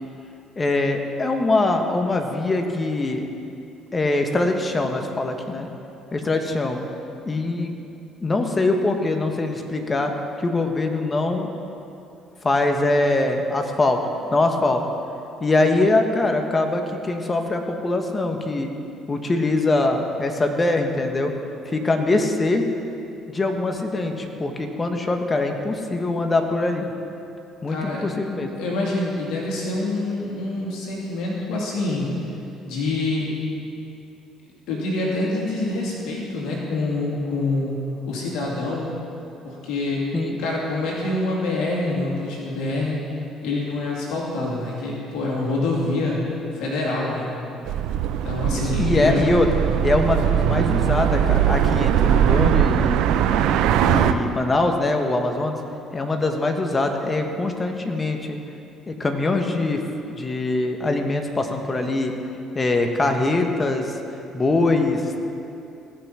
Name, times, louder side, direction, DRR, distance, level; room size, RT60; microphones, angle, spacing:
voice 1, 0.6-3.2 3.9-5.7 6.1-6.8 7.2-7.7 8.2-10.1 10.4-11.5 12.4-14.0 14.3-14.8 15.4-18.7 19.1-21.3 21.6-22.6 23.3-26.9 27.6-28.5 40.1-40.4 48.4-49.5 49.8-53.0 53.8-55.6 55.9-58.4 58.9-59.8 60.1-62.1 62.5-63.9 64.3-65.0, left 2 dB, 30° left, 4 dB, 1.5 m, -23 dB
voice 2, 27.7-28.1 28.5-32.1 32.6-33.3 34.7-37.8 38.1-38.9 39.4-40.0 40.4-43.0 43.4-46.2 46.5-47.3 48.1-49.2, left 2 dB, 75° left, -4 dB, 2.6 m, -26 dB
sound 1, 47.7-54.1, right 10 dB, 70° right, 0.5 m, -20 dB
17.5 x 6.0 x 5.7 m, 2.7 s
hypercardioid pair, 60°, 0 cm